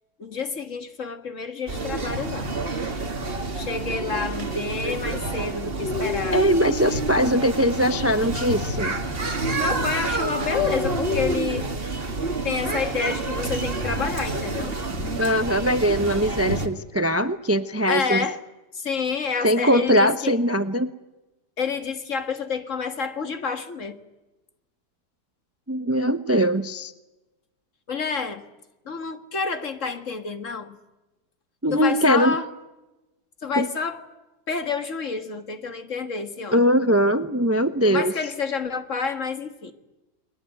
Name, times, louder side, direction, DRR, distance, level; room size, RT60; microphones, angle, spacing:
voice 1, 0.2-2.5 3.5-6.6 9.5-11.7 12.4-14.8 17.9-18.4 18.7-20.3 21.6-24.0 27.9-28.4 28.9-30.8 31.7-32.5 33.4-34.0 34.5-36.6 37.8-39.7, left 5 dB, 50° left, 2.0 m, -28 dB
sound 1, 1.7-16.7, right 2 dB, 35° right, 2.1 m, -28 dB
voice 2, 6.3-8.9 15.2-18.2 19.4-20.9 25.7-26.9 31.6-32.4 33.6-33.7 36.5-38.1, equal, 15° right, 0.5 m, -21 dB
sound 2, 13.7-16.1, equal, 5° left, 2.3 m, -37 dB
30.0 x 21.5 x 9.3 m
omnidirectional pair, 1.8 m